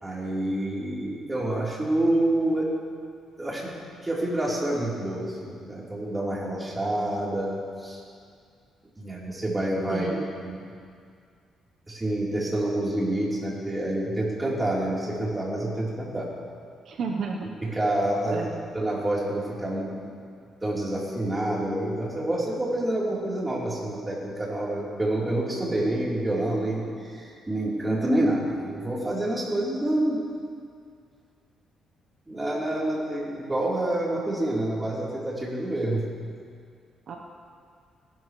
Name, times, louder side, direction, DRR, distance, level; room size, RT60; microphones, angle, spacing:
voice 1, 0.0-2.7 3.4-3.7 4.0-8.0 9.0-10.1 10.4-10.7 11.9-16.3 17.6-20.1 20.6-30.2 32.3-36.1, right 1 dB, 15° right, -5 dB, 3.8 m, -27 dB
voice 2, 9.9-10.2 16.8-17.5 18.3-18.7 37.1-37.2, right 5 dB, 65° right, 0 dB, 1.0 m, -31 dB
18.5 x 12.0 x 3.2 m, 2.2 s
cardioid pair, 90°, 0 cm